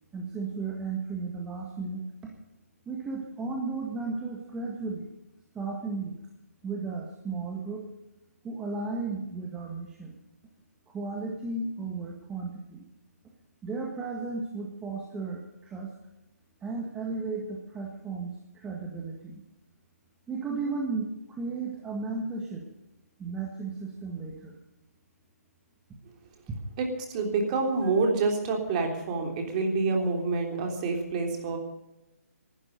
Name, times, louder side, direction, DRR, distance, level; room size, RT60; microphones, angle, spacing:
voice 1, 0.1-2.1 2.9-5.1 5.6-6.1 6.6-7.9 8.4-10.1 10.9-12.8 13.6-15.9 16.6-19.4 20.3-22.6 23.2-24.6, right 4 dB, 10° right, -1 dB, 1.7 m, -34 dB
voice 2, 26.8-31.6, right 3 dB, 25° right, 3 dB, 3.3 m, -27 dB
20.0 x 12.0 x 5.3 m, 0.95 s
hypercardioid pair, 155°, 9 cm